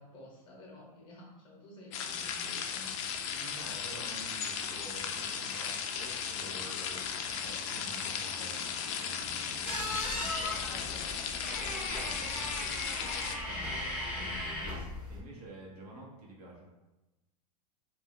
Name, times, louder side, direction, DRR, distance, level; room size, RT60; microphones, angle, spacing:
voice 1, 0.0-3.3 9.6-9.9 14.2-14.4, left 1 dB, 25° left, -2 dB, 0.8 m, -52 dB
sound 1, 1.9-13.4, left 7 dB, 50° left, 0.4 m, -36 dB
voice 2, 3.3-14.8 15.1-16.7, right 2 dB, 75° right, -3 dB, 1.0 m, -50 dB
sound 2, 9.6-15.2, left 1 dB, 5° right, 0.7 m, -37 dB
2.4 x 2.2 x 3.6 m, 1.0 s
supercardioid pair, 135°, 20 cm